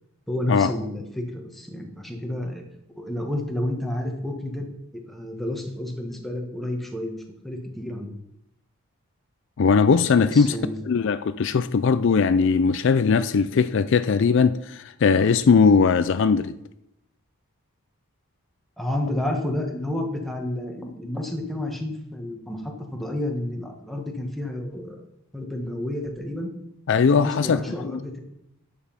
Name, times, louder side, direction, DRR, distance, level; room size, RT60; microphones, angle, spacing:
voice 1, 0.3-2.6 3.0-4.7 4.9-8.1 10.2-10.8 18.8-25.0 25.3-26.5 27.1-28.2, left 1 dB, ahead, 1.5 m, -30 dB
voice 2, 9.6-10.6 10.9-16.6 26.9-27.6 27.9-28.0, left 5 dB, 55° left, 0.4 m, -19 dB
10.0 x 7.0 x 5.7 m
head